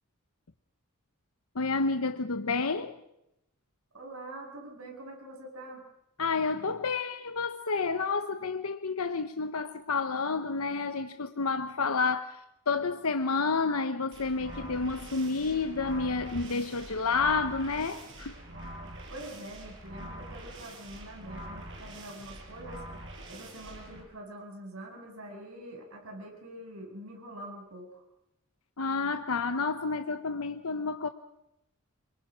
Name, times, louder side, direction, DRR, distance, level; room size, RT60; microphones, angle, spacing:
voice 1, 1.5-3.0 6.2-12.4 12.7-18.3 28.8-31.1, left 4 dB, 85° left, 1.0 m, -30 dB
voice 2, 3.9-5.8 19.1-22.8 23.3-28.0, right 1 dB, 90° right, 7.3 m, -45 dB
sound 1, 14.1-24.0, right 1 dB, 60° right, 6.2 m, -44 dB
27.0 x 23.5 x 6.3 m
head